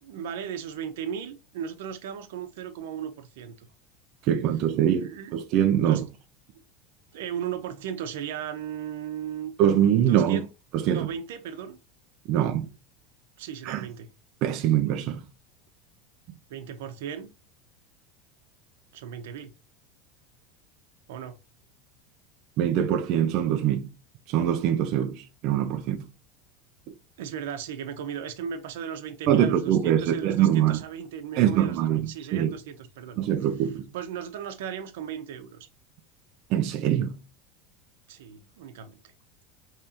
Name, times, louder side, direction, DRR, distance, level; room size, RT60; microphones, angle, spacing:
voice 1, 0.0-3.7 5.0-5.3 5.8-6.0 7.1-9.5 10.1-10.5 10.9-11.8 12.3-12.7 13.4-14.1 16.5-17.3 18.9-19.5 21.1-21.4 27.2-33.2 33.9-35.7 38.1-39.0, right 8 dB, 85° right, 0.9 m, -36 dB
voice 2, 4.2-6.0 9.6-10.4 10.7-11.1 12.3-12.6 13.6-13.9 14.4-15.2 22.6-23.9 24.3-26.1 29.3-30.8 31.4-32.5 33.2-33.9 36.5-37.2, right 10 dB, 40° right, 0.5 m, -23 dB
5.1 x 3.2 x 2.8 m
supercardioid pair, 175°, 0 cm